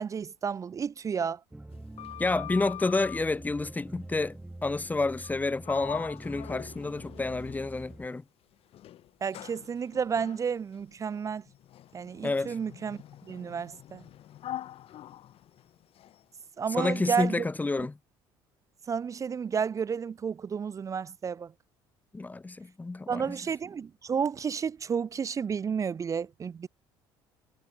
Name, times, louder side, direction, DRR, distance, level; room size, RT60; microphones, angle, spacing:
voice 1, 0.0-1.4 9.2-11.4 11.9-14.0 16.6-17.5 18.9-21.5 23.1-26.7, right 6 dB, 30° right, 0.4 m, -31 dB
sound 1, 1.5-8.1, right 2 dB, 10° right, 1.4 m, -46 dB
Sliding door, 1.7-3.3 5.2-5.4 5.6-8.1 8.7-16.2, left 12 dB, 60° left, 6.3 m, -44 dB
voice 2, 2.2-8.2 12.2-12.6 16.7-18.0 22.1-23.4, left 3 dB, 15° left, 0.7 m, -29 dB
hypercardioid pair, 70°, 11 cm